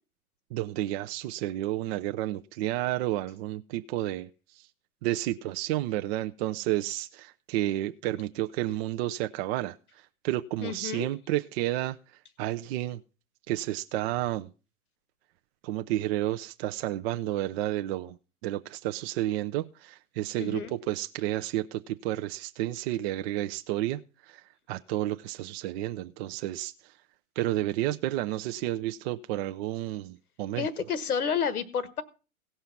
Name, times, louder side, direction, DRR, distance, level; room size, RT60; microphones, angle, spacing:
voice 1, 0.5-4.3 4.5-4.7 5.0-12.0 12.4-13.0 13.5-14.5 15.6-18.2 18.4-24.4 24.7-26.7 27.4-30.7, right 15 dB, 45° right, 0.6 m, -31 dB
voice 2, 10.6-11.1 20.4-20.8 30.5-32.0, left 6 dB, 85° left, 1.3 m, -30 dB
17.0 x 5.6 x 5.8 m
hypercardioid pair, 105°, 43 cm